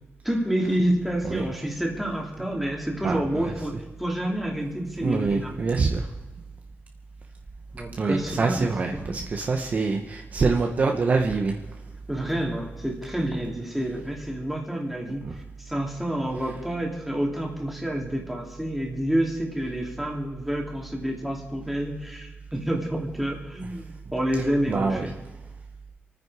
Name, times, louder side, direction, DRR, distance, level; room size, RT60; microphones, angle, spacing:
voice 1, 0.2-5.7 7.7-9.1 12.1-25.1, right 1 dB, ahead, 0 dB, 2.6 m, -28 dB
voice 2, 3.0-3.5 5.0-6.1 8.0-11.6 15.2-15.3 16.4-16.5 24.7-25.1, right 4 dB, 35° right, 3 dB, 1.0 m, -25 dB
28.0 x 9.6 x 4.8 m, 1.1 s
wide cardioid pair, 180°, 4 cm